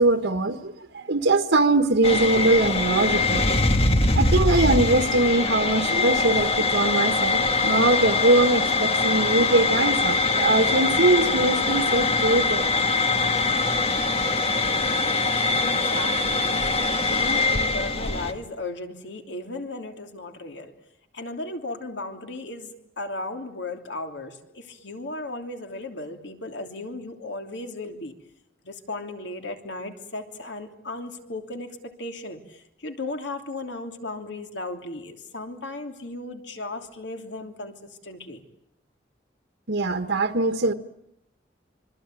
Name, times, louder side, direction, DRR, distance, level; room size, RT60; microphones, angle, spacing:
voice 1, 0.0-3.6 4.1-12.7 39.7-40.7, right 2 dB, 90° right, 7 dB, 1.5 m, -22 dB
sound 1, 2.0-18.3, left 3 dB, 30° left, 1.8 m, -23 dB
voice 2, 15.6-16.7 17.0-20.7 21.1-28.1 28.6-38.4, left 2 dB, 80° left, 5 dB, 3.0 m, -36 dB
26.0 x 25.0 x 9.1 m, 0.82 s
head